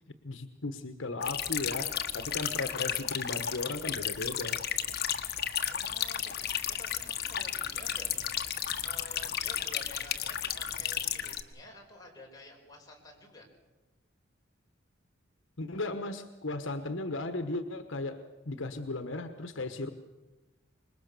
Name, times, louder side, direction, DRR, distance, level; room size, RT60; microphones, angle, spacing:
voice 1, 0.2-4.6 15.6-19.9, left 2 dB, 75° left, 9 dB, 1.3 m, -36 dB
sound 1, 1.2-11.4, left 9 dB, 55° left, 1.4 m, -33 dB
voice 2, 5.6-6.5 6.8-8.6 8.8-13.5, left 2 dB, 20° left, -1 dB, 5.4 m, -51 dB
26.0 x 21.5 x 6.9 m, 1.1 s
head